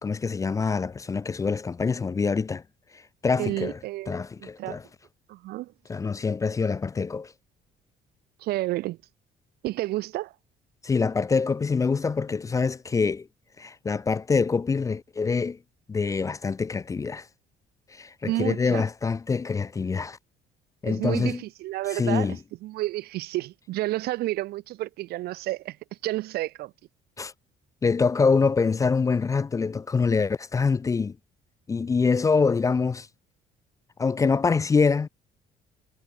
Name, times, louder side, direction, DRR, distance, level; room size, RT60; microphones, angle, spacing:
voice 1, 0.0-2.6 3.2-3.8 4.1-4.8 5.9-7.3 10.8-13.3 13.6-15.6 15.9-17.3 17.9-20.2 20.8-21.4 21.9-22.4 27.2-27.3 27.8-31.2 31.7-33.1 34.0-35.1, left 5 dB, 20° left, 0.3 m, -25 dB
voice 2, 3.4-4.8 5.3-5.7 8.4-9.0 9.6-10.3 18.2-18.8 20.8-22.4 22.6-25.8 26.0-26.7, right 17 dB, 70° right, 0.4 m, -30 dB
cardioid pair, 110°, 17 cm